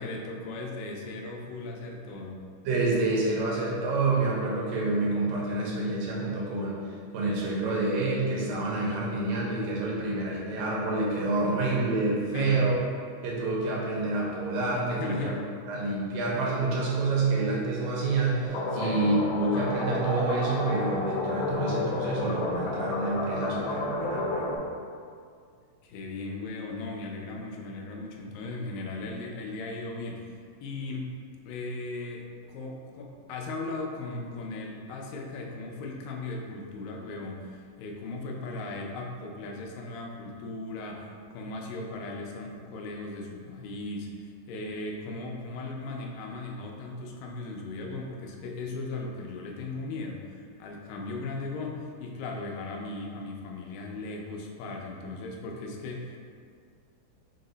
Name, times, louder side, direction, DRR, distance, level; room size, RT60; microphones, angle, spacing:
voice 1, 0.0-2.4 12.3-12.7 14.9-15.4 18.7-19.0 25.8-31.1 31.5-56.2, left 2 dB, 85° left, 0 dB, 2.2 m, -37 dB
voice 2, 2.7-6.8 7.1-12.7 13.2-15.3 15.7-24.6, right 2 dB, 85° right, -4 dB, 2.4 m, -28 dB
sound 1, 18.5-24.6, left 2 dB, 70° left, 1.5 m, -30 dB
5.9 x 2.0 x 3.8 m, 2.1 s
omnidirectional pair, 3.9 m